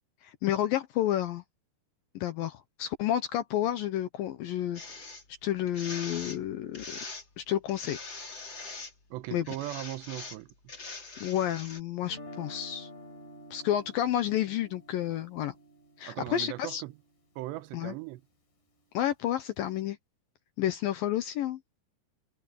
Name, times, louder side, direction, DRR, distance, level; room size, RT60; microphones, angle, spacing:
voice 1, 0.2-1.4 2.2-5.1 5.4-7.0 7.4-8.0 9.3-9.5 11.2-12.9 13.5-15.5 16.0-16.8 17.7-17.9 18.9-20.0 20.6-21.6, left 11 dB, 75° left, 2.2 m, -30 dB
sound 1, 4.7-5.2 5.7-6.4 6.7-7.2 7.7-8.9 9.4-11.8, left 3 dB, 25° left, 4.1 m, -42 dB
voice 2, 9.1-10.5 16.1-16.9 17.4-18.2, right 16 dB, 85° right, 3.0 m, -38 dB
Guitar, 12.0-18.0, equal, 50° left, 8.5 m, -50 dB
omnidirectional pair, 5.0 m